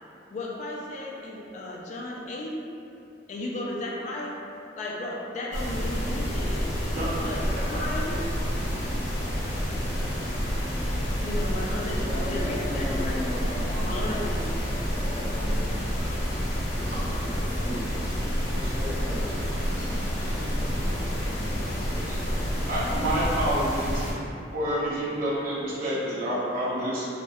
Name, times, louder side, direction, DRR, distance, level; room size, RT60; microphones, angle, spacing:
voice 1, 0.3-2.6 3.3-4.4 4.8-7.4 7.7-8.1 9.8-10.1 11.2-13.2 13.8-14.4, left 1 dB, 45° left, -3 dB, 0.3 m, -35 dB
sound 1, 5.5-24.1, equal, 85° left, 0.6 m, -29 dB
voice 2, 11.8-16.4 16.7-23.4 25.1-25.2 25.7-25.8, equal, 15° right, -16 dB, 1.3 m, -39 dB
voice 3, 22.7-24.1 24.5-27.0, right 1 dB, 55° right, -9 dB, 0.7 m, -28 dB
2.6 x 2.0 x 2.3 m, 2.7 s
head